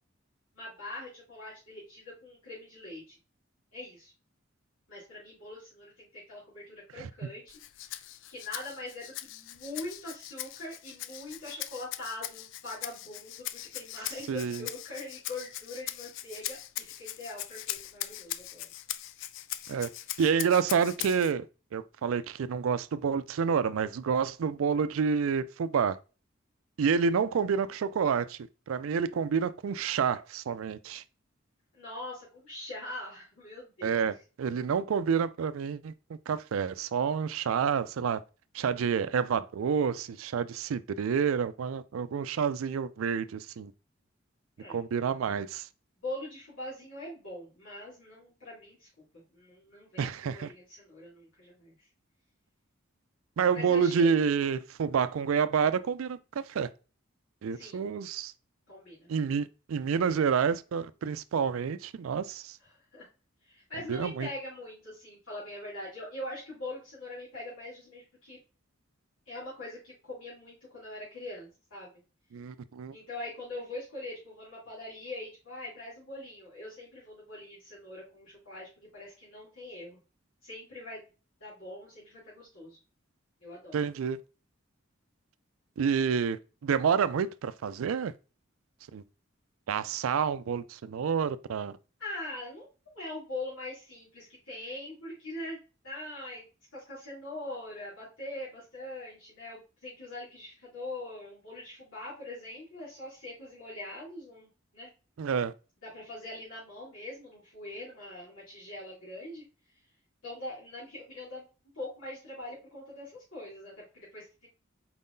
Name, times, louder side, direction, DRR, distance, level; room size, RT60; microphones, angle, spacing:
voice 1, 0.5-3.1 3.7-4.1 4.9-18.7 31.7-34.1 44.6-44.8 46.0-48.9 49.3-51.7 53.5-54.1 57.5-57.8 58.7-59.1 62.6-63.1 63.4-68.4 69.3-71.9 72.9-80.0 80.4-81.0 81.4-82.8 83.4-83.8 92.0-92.6 92.9-95.6 95.8-104.9 105.8-109.4 110.2-111.4 111.7-114.5, left 1 dB, 90° left, 2.5 m, -42 dB
Rattle (instrument), 7.5-21.3, left 13 dB, 65° left, 0.3 m, -40 dB
voice 2, 14.3-14.7 19.7-19.9 20.2-21.5 21.7-26.0 26.8-28.4 28.7-31.0 33.8-38.2 38.5-43.7 44.7-45.7 50.0-50.5 53.4-56.2 56.5-56.7 57.4-58.3 59.1-62.6 63.9-64.3 72.3-72.9 83.7-84.2 85.8-86.4 86.6-88.1 88.9-89.0 89.7-91.7 105.2-105.5, right 6 dB, 90° right, 0.4 m, -28 dB
4.6 x 3.7 x 2.6 m
head